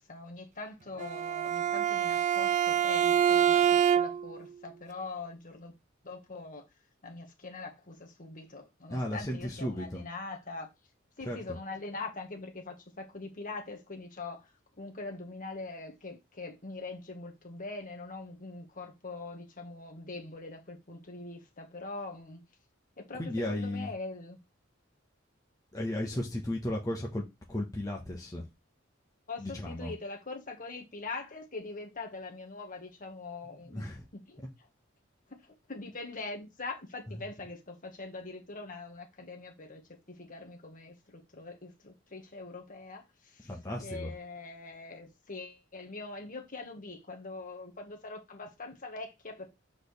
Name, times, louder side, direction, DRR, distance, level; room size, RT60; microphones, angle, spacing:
voice 1, 0.0-5.7 6.0-6.6 7.0-10.7 11.2-14.5 14.8-22.4 23.0-24.4 29.3-33.9 34.1-34.4 35.7-39.8 40.1-43.5 43.8-49.5, left 3 dB, 45° left, 1.6 m, -43 dB
Bowed string instrument, 1.0-4.4, right 9 dB, 40° right, 0.4 m, -26 dB
voice 2, 8.9-10.0 11.2-11.6 23.1-23.9 25.7-28.5 29.4-29.9 33.4-34.1 37.1-37.3 43.4-44.1, left 1 dB, 20° left, 1.1 m, -35 dB
7.6 x 4.2 x 3.3 m
head